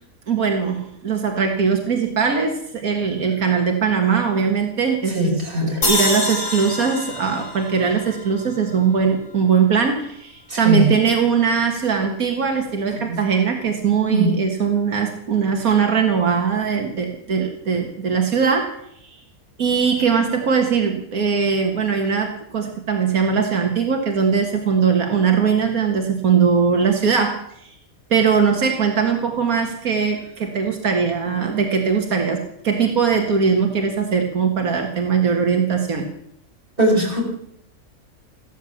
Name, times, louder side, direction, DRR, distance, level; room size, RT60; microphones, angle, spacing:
voice 1, 0.3-5.3 5.6-18.8 19.6-27.7 28.1-36.0, right 6 dB, 85° right, 3 dB, 2.1 m, -20 dB
voice 2, 5.1-5.8 10.5-10.8 12.9-13.2 14.1-14.4 36.8-37.2, right 1 dB, 40° right, 0 dB, 5.5 m, -20 dB
sound 1, 5.8-9.1, left 2 dB, 65° left, 3.9 m, -26 dB
15.0 x 13.0 x 7.2 m, 0.71 s
omnidirectional pair, 1.5 m